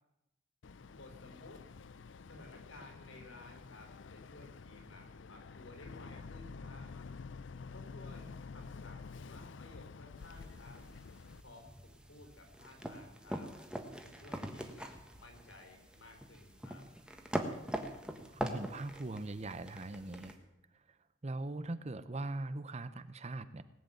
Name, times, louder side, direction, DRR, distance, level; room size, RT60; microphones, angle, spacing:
Boat Water vehicle, 0.6-11.4, left 4 dB, 70° left, 0.5 m, -49 dB
voice 1, 0.9-1.6 2.2-6.9 7.7-10.8 11.4-13.5 14.0-16.8, left 2 dB, 85° left, 4 dB, 4.1 m, -56 dB
sound 1, 10.2-20.3, right 1 dB, 5° right, 1.4 m, -43 dB
voice 2, 18.3-20.4 20.7-21.0 21.2-23.6, right 2 dB, 35° right, 13 dB, 0.7 m, -41 dB
18.5 x 8.1 x 9.1 m, 0.90 s
head